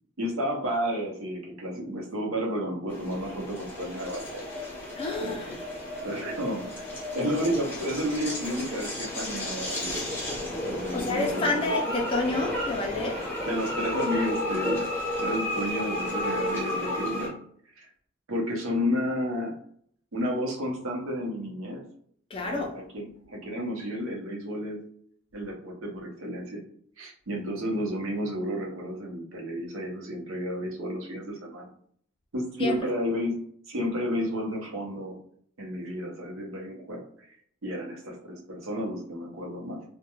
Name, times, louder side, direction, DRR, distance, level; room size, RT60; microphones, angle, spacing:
voice 1, 0.2-4.4 5.2-5.6 6.0-6.8 7.1-10.0 10.7-11.7 13.4-17.4 17.8-17.9 18.3-19.5 20.1-21.9 22.4-24.9 25.3-26.6 27.0-31.7 32.3-33.4 33.7-35.2 35.6-37.3 37.6-39.8, equal, 85° right, -1 dB, 0.7 m, -31 dB
sound 1, 2.9-17.3, left 1 dB, 10° left, 0.8 m, -32 dB
voice 2, 5.0-5.5 10.9-13.2 22.3-22.7 32.6-32.8, left 2 dB, 25° left, 1 dB, 0.3 m, -29 dB
2.2 x 2.1 x 2.9 m, 0.63 s
head